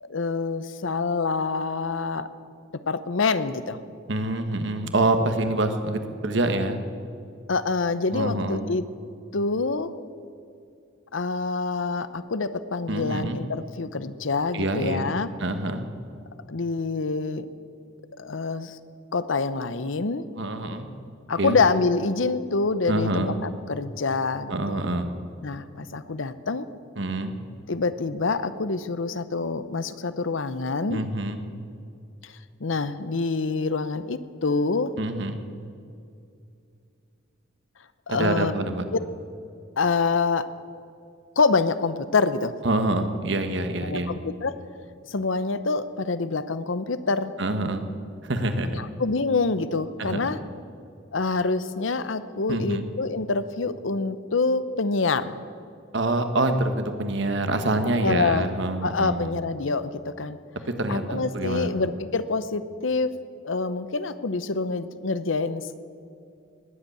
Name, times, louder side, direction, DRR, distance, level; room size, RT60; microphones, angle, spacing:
voice 1, 0.0-2.3 2.9-3.8 7.5-8.8 9.3-9.9 11.1-15.3 16.5-17.5 18.2-18.8 19.1-20.3 21.3-24.8 25.4-26.7 27.7-31.0 32.2-32.3 32.6-34.9 38.1-38.5 38.9-39.0 39.8-40.5 41.4-42.5 43.8-44.6 45.1-47.3 48.7-50.4 51.1-55.4 58.0-58.5 58.8-60.4 60.9-63.2 63.4-65.8, left 4 dB, 70° left, 13 dB, 0.8 m, -26 dB
voice 2, 4.1-6.8 8.1-8.6 12.9-13.4 14.5-15.1 15.4-15.8 20.4-20.9 21.4-21.6 22.9-23.3 24.5-25.1 27.0-27.3 30.9-31.4 35.0-35.4 38.1-38.8 42.6-44.1 47.4-47.8 48.2-48.8 50.0-50.2 52.5-52.8 55.9-59.3 60.6-61.7, right 2 dB, 60° right, 8 dB, 1.3 m, -26 dB
19.5 x 8.2 x 8.6 m, 2.5 s
head